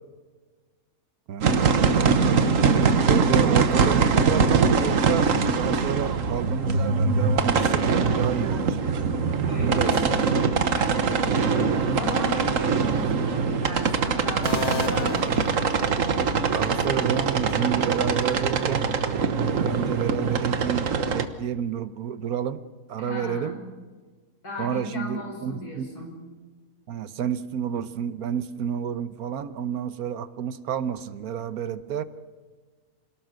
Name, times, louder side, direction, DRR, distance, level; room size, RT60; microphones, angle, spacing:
voice 1, 1.3-1.9 3.1-5.3 5.6-7.8 8.1-8.8 9.6-10.1 16.5-18.9 19.5-22.6 22.9-23.6 24.6-25.9 26.9-32.0, right 8 dB, 75° right, 13 dB, 1.4 m, -30 dB
sound 1, 1.4-21.2, right 5 dB, 60° right, 1.5 m, -23 dB
voice 2, 9.5-15.5 17.5-17.8 23.0-23.7 24.4-26.2, equal, 80° left, 2 dB, 5.9 m, -35 dB
sound 2, 9.6-20.4, right 1 dB, 15° right, 5.7 m, -46 dB
sound 3, 14.4-16.3, left 2 dB, 45° left, 1.6 m, -33 dB
27.0 x 18.5 x 6.5 m, 1.4 s
omnidirectional pair, 1.6 m